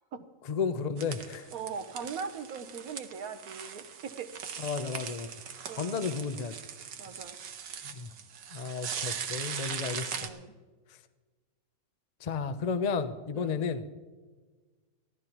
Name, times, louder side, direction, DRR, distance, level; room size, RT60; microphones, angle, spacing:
voice 1, 0.5-1.5 4.6-5.3 5.8-6.5 7.8-8.1 8.5-10.1 12.2-13.8, left 5 dB, 60° left, 11 dB, 0.4 m, -32 dB
sound 1, 1.0-10.3, right 7 dB, 85° right, 1.5 m, -40 dB
voice 2, 1.5-4.3 5.7-6.1 7.0-7.4 10.2-10.5 13.3-13.6, right 6 dB, 70° right, 8 dB, 1.4 m, -40 dB
23.0 x 15.5 x 3.0 m, 1.3 s
omnidirectional pair, 1.7 m